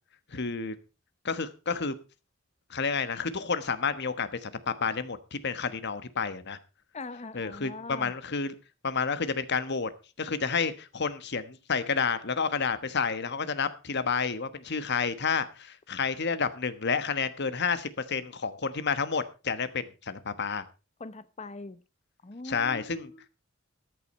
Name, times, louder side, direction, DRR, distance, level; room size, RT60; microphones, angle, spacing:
voice 1, 0.3-0.7 1.2-1.9 2.7-6.6 7.3-8.5 8.8-9.9 10.2-20.6 22.4-23.1, left 5 dB, 55° left, 1.3 m, -30 dB
voice 2, 6.9-8.1 21.0-21.8 22.2-23.3, left 3 dB, 35° left, 0.9 m, -42 dB
14.0 x 10.5 x 4.3 m
head